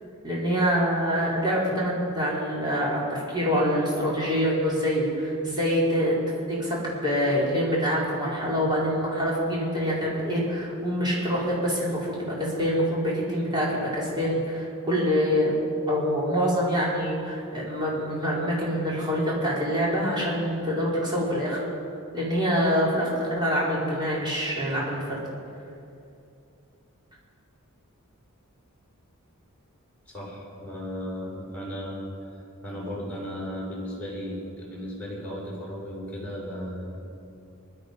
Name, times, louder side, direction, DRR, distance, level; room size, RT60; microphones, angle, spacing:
voice 1, 0.2-6.2 6.5-21.6 22.1-25.2, equal, 20° right, -6 dB, 4.4 m, -25 dB
voice 2, 30.1-37.0, equal, 5° left, -6 dB, 5.2 m, -35 dB
20.5 x 12.5 x 5.4 m, 2.5 s
head